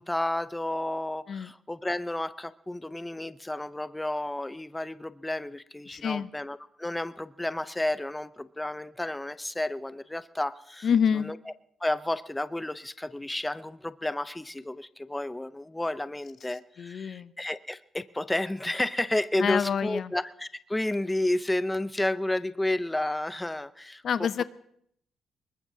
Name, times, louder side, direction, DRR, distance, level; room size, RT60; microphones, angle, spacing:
voice 1, 0.0-11.5 11.8-24.3, left 1 dB, 10° left, 14 dB, 0.5 m, -31 dB
voice 2, 5.9-6.3 10.8-11.3 16.8-17.3 19.4-20.1 24.0-24.4, left 7 dB, 60° left, 15 dB, 0.5 m, -27 dB
23.0 x 20.5 x 2.7 m, 0.69 s
cardioid pair, 85°, 0 cm